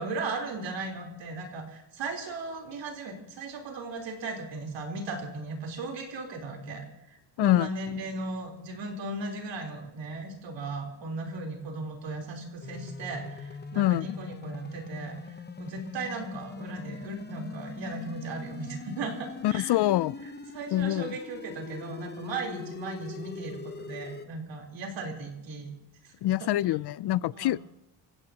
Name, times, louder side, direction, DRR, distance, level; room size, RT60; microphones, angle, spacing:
voice 1, 0.0-19.7 20.5-25.7 26.0-26.1 26.4-26.5 27.3-27.5, right 2 dB, 90° right, 1 dB, 3.8 m, -37 dB
voice 2, 7.4-7.7 13.8-14.1 19.4-20.2 20.7-21.2 26.2-27.6, left 14 dB, 65° left, 21 dB, 0.5 m, -25 dB
sound 1, 12.6-24.3, left 4 dB, 25° left, 0.8 m, -42 dB
28.5 x 16.0 x 2.9 m, 0.90 s
wide cardioid pair, 165°, 43 cm